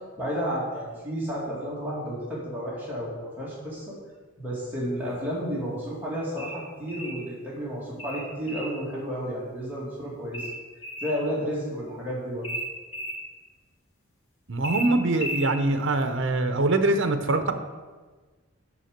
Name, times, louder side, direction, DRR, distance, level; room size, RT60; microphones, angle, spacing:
voice 1, 0.2-3.9 4.4-10.5 11.0-12.5, equal, 10° right, -7 dB, 2.4 m, -32 dB
sound 1, 6.4-7.2 8.0-8.8 10.3-11.2 12.4-13.2 14.6-15.5, right 1 dB, 80° left, 2.0 m, -34 dB
voice 2, 14.5-17.5, right 2 dB, 65° right, 7 dB, 0.8 m, -23 dB
7.3 x 6.6 x 6.6 m, 1.3 s
head